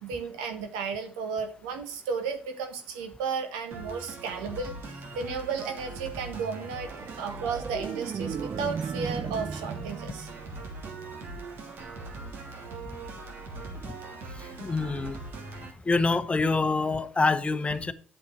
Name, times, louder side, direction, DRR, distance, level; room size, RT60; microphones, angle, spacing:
voice 1, 0.0-4.7 5.1-6.9 7.2-10.3, right 5 dB, 90° right, 6 dB, 1.4 m, -33 dB
sound 1, 3.7-15.7, right 3 dB, 60° right, 2.8 m, -41 dB
sound 2, 6.8-11.3 13.7-13.9, right 6 dB, 40° right, 0.4 m, -37 dB
voice 2, 14.3-15.3 15.8-17.9, left 3 dB, 25° left, 12 dB, 1.0 m, -26 dB
8.3 x 7.0 x 4.5 m, 0.43 s
supercardioid pair, 60°, 4 cm